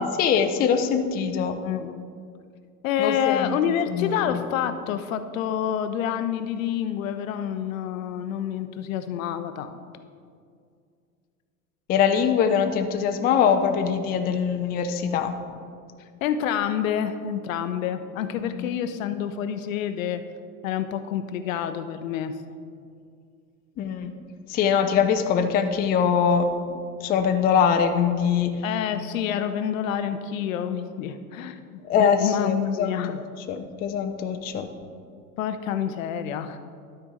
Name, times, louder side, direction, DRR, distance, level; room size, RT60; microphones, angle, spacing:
voice 1, 0.0-1.6 3.0-4.4 11.9-15.3 18.4-18.6 23.8-24.2 24.5-26.5 27.0-28.6 31.8-32.9 33.5-34.7, left 7 dB, 20° left, 6 dB, 0.4 m, -23 dB
voice 2, 1.6-2.0 2.8-9.8 16.2-20.2 20.6-22.4 28.6-33.2 35.4-36.6, left 9 dB, 60° left, 10 dB, 0.7 m, -28 dB
12.0 x 4.5 x 5.1 m, 2.3 s
figure-of-eight pair, 70°, 46 cm